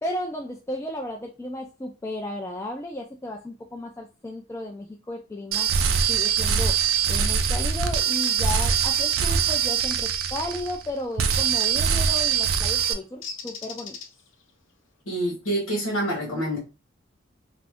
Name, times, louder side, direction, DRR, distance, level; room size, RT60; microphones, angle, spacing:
voice 1, 0.0-5.7 6.1-6.8 7.1-13.9, left 1 dB, 15° left, 0.3 m, -34 dB
sound 1, 5.5-10.9 11.2-12.9, right 7 dB, 85° right, 0.4 m, -23 dB
Bird, 8.2-9.1 11.7-11.9 13.2-14.4, left 6 dB, 65° left, 0.5 m, -38 dB
voice 2, 15.1-16.6, right 1 dB, 85° left, 1.1 m, -27 dB
2.5 x 2.4 x 3.4 m
head